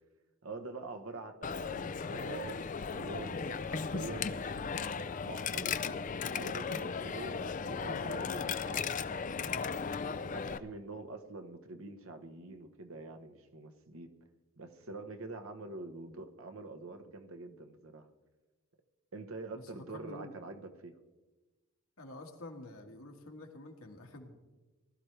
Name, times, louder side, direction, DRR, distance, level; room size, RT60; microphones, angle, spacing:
voice 1, 0.4-6.0 6.3-9.4 10.3-14.1 14.6-18.1 19.1-21.0, right 3 dB, 70° right, 6 dB, 1.1 m, -46 dB
Coin (dropping), 1.4-10.6, left 5 dB, 35° left, 0.4 m, -36 dB
voice 2, 19.5-20.3 22.0-24.4, left 2 dB, 75° left, 3 dB, 1.8 m, -48 dB
20.0 x 12.5 x 3.4 m, 1.2 s
head